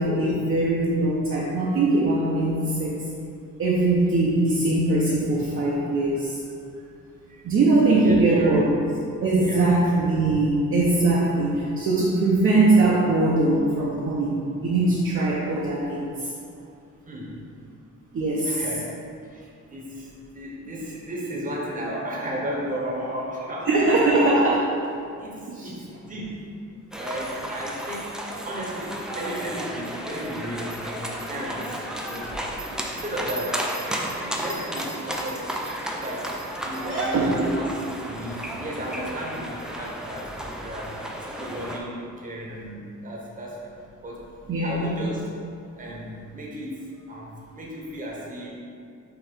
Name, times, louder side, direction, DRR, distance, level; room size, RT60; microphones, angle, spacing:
voice 1, 0.0-3.0 3.6-6.4 7.4-8.7 9.2-16.1 18.1-18.6 23.7-24.6 25.5-25.7 36.8-37.5 44.5-44.9, right 2 dB, 45° right, -6 dB, 0.7 m, -21 dB
voice 2, 7.9-8.6 9.4-9.8 17.1-17.4 18.4-24.4 25.2-26.5 27.0-32.4 32.9-35.5 35.9-43.7 44.0-45.3 45.8-48.5, equal, 25° right, -4 dB, 1.0 m, -35 dB
sound 1, 26.9-41.8, right 1 dB, ahead, 0.3 m, -33 dB
5.8 x 3.0 x 5.3 m, 2.4 s
wide cardioid pair, 175°, 31 cm